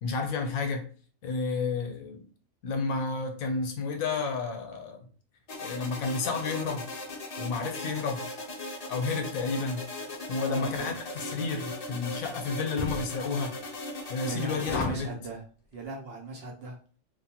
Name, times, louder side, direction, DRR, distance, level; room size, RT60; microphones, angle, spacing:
voice 1, 0.0-0.9 1.2-2.2 2.6-5.0 5.6-6.9 7.4-8.3 8.9-9.8 10.3-13.6 14.1-15.1, left 4 dB, 85° left, 1.1 m, -31 dB
sound 1, 5.5-14.9, left 2 dB, 45° left, 0.5 m, -38 dB
voice 2, 10.4-10.9 14.0-15.4 15.7-16.8, right 3 dB, 55° right, 0.7 m, -38 dB
sound 2, 12.8-13.1 14.7-15.1, left 3 dB, 65° left, 0.9 m, -33 dB
3.2 x 2.5 x 2.8 m
omnidirectional pair, 1.4 m